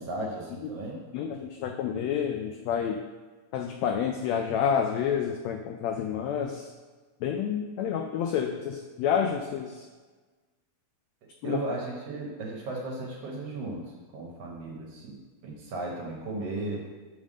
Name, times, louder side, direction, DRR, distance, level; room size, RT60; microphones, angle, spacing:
voice 1, 0.0-1.0 11.4-16.9, right 2 dB, 60° right, -2 dB, 1.8 m, -36 dB
voice 2, 1.1-3.0 3.5-6.7 7.2-9.9 11.4-11.6, left 8 dB, 90° left, 4 dB, 1.5 m, -29 dB
7.4 x 3.5 x 6.3 m, 1.3 s
omnidirectional pair, 3.6 m